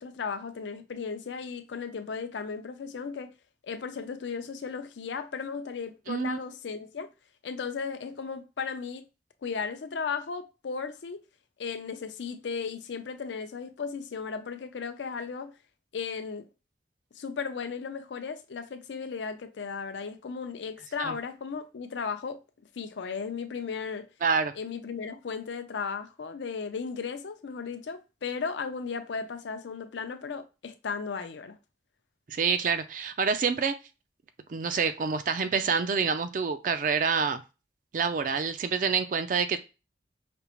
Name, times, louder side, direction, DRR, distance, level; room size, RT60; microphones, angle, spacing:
voice 1, 0.0-3.3 3.6-7.1 7.4-9.0 9.4-11.2 11.6-15.5 15.9-16.4 17.2-22.4 22.8-24.1 24.6-31.6, left 5 dB, 80° left, 0.5 m, -35 dB
voice 2, 6.1-6.4 21.0-21.2 24.2-24.5 32.3-33.7 34.5-37.4 37.9-39.6, right 5 dB, 45° right, 0.4 m, -27 dB
5.1 x 2.0 x 2.9 m
head